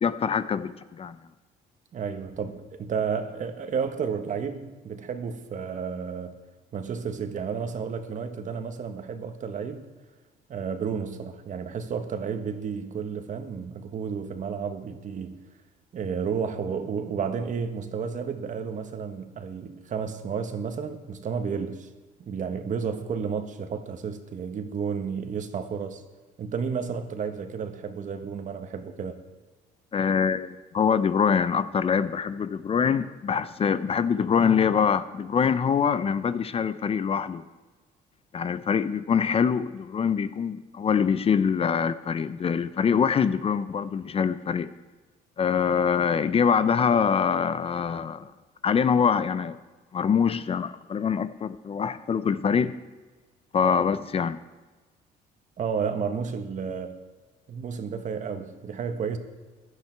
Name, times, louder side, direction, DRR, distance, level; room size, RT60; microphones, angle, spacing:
voice 1, 0.0-1.2 29.9-37.4 38.3-44.7 45.4-48.3 48.6-49.6 49.9-52.7 53.5-54.4, left 7 dB, 35° left, 0.6 m, -24 dB
voice 2, 1.9-6.4 6.7-9.8 10.5-15.4 15.9-21.9 22.2-26.0 26.4-29.2 55.6-57.0 57.5-59.2, right 6 dB, 45° right, 1.5 m, -32 dB
16.0 x 11.5 x 4.6 m
cardioid pair, 110°, 17 cm